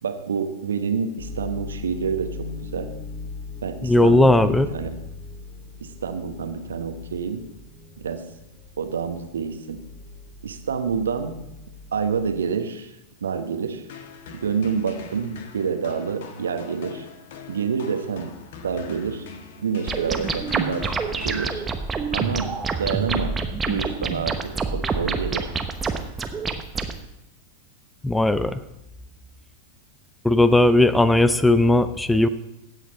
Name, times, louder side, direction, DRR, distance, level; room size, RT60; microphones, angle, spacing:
voice 1, 0.0-2.9 3.6-4.9 5.8-7.4 8.0-8.2 8.8-9.8 10.4-11.4 11.9-12.9 13.2-13.8 14.3-17.0 17.5-18.3 18.6-19.3 19.6-21.6 22.1-23.3 23.7-25.5, right 6 dB, 70° right, 8 dB, 1.2 m, -28 dB
sound 1, 1.2-12.4, left 3 dB, 25° left, 2.0 m, -39 dB
voice 2, 3.8-4.7 28.0-28.6 30.2-32.3, left 2 dB, 5° left, 14 dB, 0.5 m, -17 dB
sound 2, 13.9-22.0, left 5 dB, 55° left, 1.3 m, -42 dB
sound 3, 19.9-26.9, right 4 dB, 15° right, 1.0 m, -27 dB
16.0 x 8.1 x 4.1 m, 0.87 s
figure-of-eight pair, 90°, 0 cm